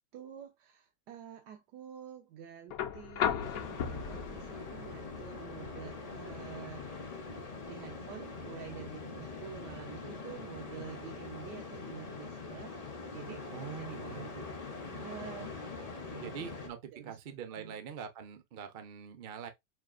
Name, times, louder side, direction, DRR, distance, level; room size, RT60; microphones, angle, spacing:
voice 1, 0.1-6.9 7.7-9.0 9.4-12.8 13.0-14.5 14.9-16.4 16.9-17.8, right 9 dB, 85° right, 1.4 m, -48 dB
sound 1, 2.7-10.7 12.2-12.3, left 9 dB, 70° left, 1.0 m, -39 dB
sound 2, 3.4-16.7, left 4 dB, 50° left, 0.4 m, -43 dB
voice 2, 13.5-14.3 16.1-16.8 17.0-19.5, right 7 dB, 55° right, 0.6 m, -44 dB
6.0 x 2.4 x 2.4 m
omnidirectional pair, 1.8 m